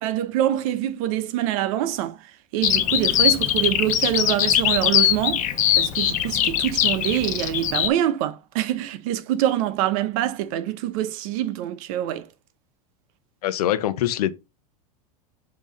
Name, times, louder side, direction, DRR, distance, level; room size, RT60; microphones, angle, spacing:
voice 1, 0.0-2.2 2.5-5.5 5.8-12.3, right 12 dB, 60° right, 0.9 m, -25 dB
Bird vocalization bird call bird song, 2.6-7.9, left 10 dB, 40° left, 1.1 m, -21 dB
voice 2, 13.4-14.3, left 12 dB, 80° left, 0.9 m, -23 dB
7.8 x 3.1 x 5.2 m
supercardioid pair, 120°, 20 cm